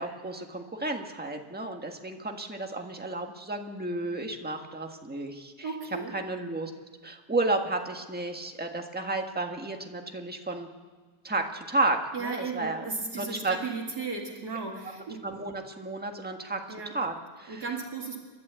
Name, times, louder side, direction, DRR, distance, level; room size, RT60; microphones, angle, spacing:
voice 1, 0.0-5.7 6.1-6.7 7.0-10.7 11.2-12.9 13.2-13.6 15.2-17.7, right 2 dB, 5° right, 3 dB, 1.4 m, -32 dB
voice 2, 5.6-6.1 12.1-15.2 16.7-16.9 17.5-18.2, right 4 dB, 55° right, 0 dB, 2.6 m, -35 dB
29.5 x 12.0 x 8.3 m, 1.4 s
omnidirectional pair, 2.1 m